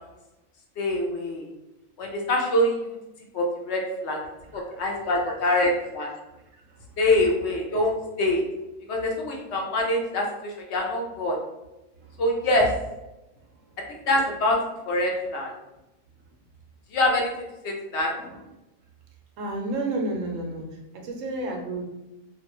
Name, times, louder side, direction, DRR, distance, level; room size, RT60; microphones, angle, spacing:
voice 1, 0.8-1.4 2.0-3.0 3.3-4.2 4.5-6.1 7.0-8.4 8.9-11.4 12.2-12.7 14.1-14.6 14.9-15.5 16.9-17.3 17.6-18.1, left 1 dB, 65° left, 0 dB, 0.8 m, -24 dB
voice 2, 4.4-5.6 6.6-6.8 12.0-12.1 18.2-18.4 19.4-20.7 20.9-21.8, right 2 dB, 80° right, 1 dB, 0.9 m, -32 dB
2.5 x 2.2 x 2.9 m, 0.98 s
omnidirectional pair, 1.3 m